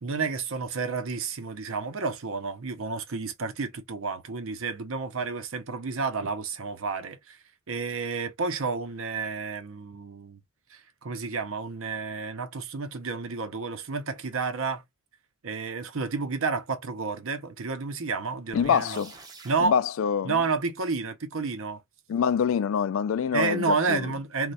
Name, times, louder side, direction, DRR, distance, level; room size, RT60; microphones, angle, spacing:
voice 1, 0.0-7.4 7.7-10.4 10.7-14.8 15.4-19.0 19.4-19.8 20.2-21.8 23.3-24.5, right 4 dB, 65° right, 0.7 m, -30 dB
voice 2, 18.5-19.1 19.6-20.4 22.1-24.1, left 7 dB, 65° left, 0.3 m, -25 dB
sound 1, 18.5-19.7, right 3 dB, 15° right, 0.6 m, -47 dB
3.1 x 2.3 x 4.1 m
head